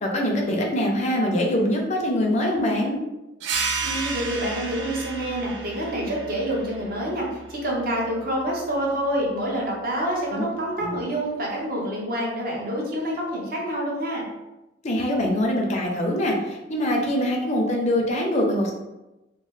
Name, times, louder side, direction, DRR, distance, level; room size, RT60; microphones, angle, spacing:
voice 1, 0.0-3.0 10.3-10.5 10.8-11.0 14.8-18.7, left 1 dB, 35° left, 0 dB, 0.5 m, -23 dB
sound 1, 3.4-8.6, right 4 dB, 70° right, 0.3 m, -32 dB
voice 2, 3.8-14.2, right 1 dB, 50° right, -3 dB, 0.8 m, -27 dB
3.0 x 2.0 x 3.2 m, 1.0 s
head